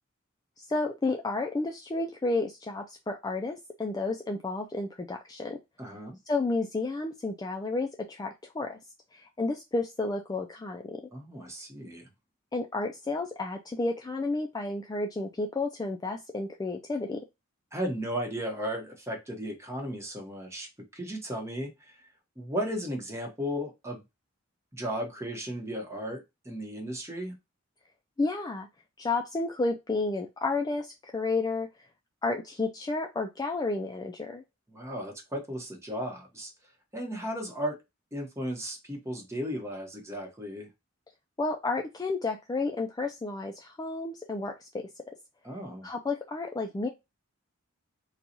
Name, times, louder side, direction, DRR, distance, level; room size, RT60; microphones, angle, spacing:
voice 1, 0.6-5.6 6.3-8.8 9.1-11.0 12.5-17.2 28.2-28.7 29.0-31.7 32.2-34.4 41.4-44.7 45.8-46.9, left 3 dB, 20° left, 0.3 m, -31 dB
voice 2, 5.8-6.2 11.1-12.1 17.7-22.0 22.4-24.0 24.7-27.3 34.7-36.5 36.9-37.8 38.1-40.7 45.4-45.9, equal, 15° right, 1.0 m, -35 dB
3.9 x 2.3 x 2.8 m
head